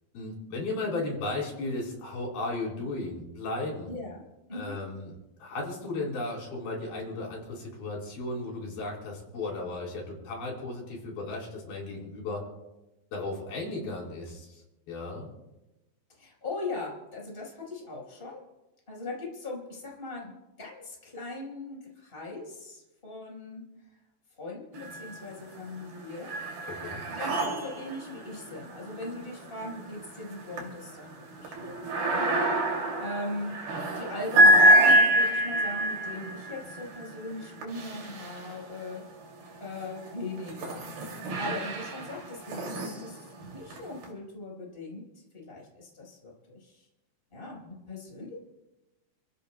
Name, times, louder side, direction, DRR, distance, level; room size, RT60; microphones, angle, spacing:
voice 1, 0.1-3.9 4.5-5.1 5.4-12.4 13.1-15.3 26.8-27.0, left 2 dB, 75° left, -2 dB, 5.9 m, -35 dB
voice 2, 3.8-4.8 16.2-18.4 18.9-20.3 20.6-23.6 24.4-26.3 27.1-32.3 32.8-33.5 33.9-39.0 39.6-43.2 43.5-45.0 45.3-46.9 47.3-48.4, left 2 dB, 15° left, -3 dB, 4.3 m, -39 dB
sound 1, 24.7-25.4 25.8-38.9 39.6-44.1, right 1 dB, 80° right, 4.4 m, -27 dB
29.5 x 15.5 x 2.2 m, 1.0 s
omnidirectional pair, 4.3 m